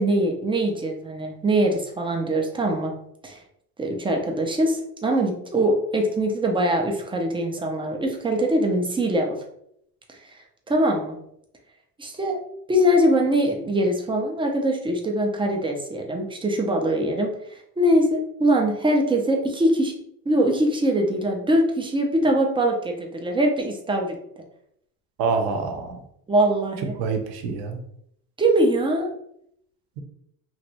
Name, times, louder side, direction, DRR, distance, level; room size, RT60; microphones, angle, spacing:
voice 1, 0.0-2.9 3.2-3.4 3.8-9.4 10.1-10.4 10.7-11.2 12.0-12.4 12.7-19.9 20.3-24.2 26.3-26.9 28.4-29.1, right 1 dB, 15° right, 1 dB, 0.5 m, -22 dB
voice 2, 25.2-26.0 27.0-27.8, right 4 dB, 65° right, 5 dB, 0.8 m, -26 dB
3.1 x 2.5 x 2.9 m, 0.72 s
supercardioid pair, 110°, 40 cm